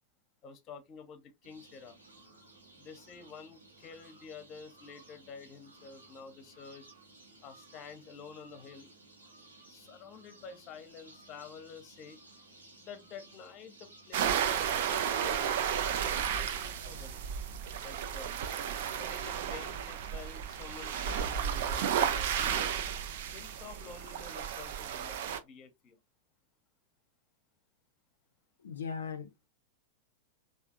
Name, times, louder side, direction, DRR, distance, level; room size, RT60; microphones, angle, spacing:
voice 1, 0.4-2.0 2.8-6.9 7.4-8.9 9.7-12.2 12.8-17.2 17.8-18.3 18.9-22.7 23.3-25.2 25.4-26.0, left 5 dB, 35° left, 0.7 m, -49 dB
sound 1, 1.4-17.1, right 2 dB, 75° right, 1.1 m, -57 dB
sound 2, 14.1-25.4, right 8 dB, 55° right, 0.4 m, -33 dB
voice 2, 28.6-29.5, left 6 dB, 65° left, 0.4 m, -39 dB
3.4 x 2.5 x 2.4 m
figure-of-eight pair, 90°, 0 cm